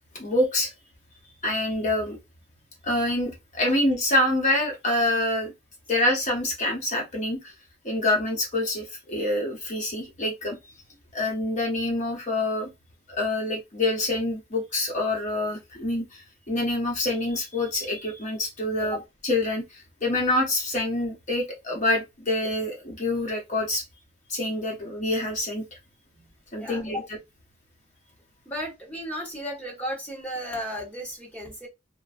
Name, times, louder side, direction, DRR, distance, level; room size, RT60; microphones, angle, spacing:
voice 1, 0.1-0.7 1.4-2.2 2.8-5.5 5.9-7.5 7.8-10.6 11.1-12.7 13.1-23.8 24.3-25.6 26.5-27.0, left 1 dB, 35° left, 0.9 m, -26 dB
voice 2, 26.6-27.1 28.5-31.7, equal, 5° left, 1.0 m, -34 dB
3.0 x 2.3 x 2.5 m
head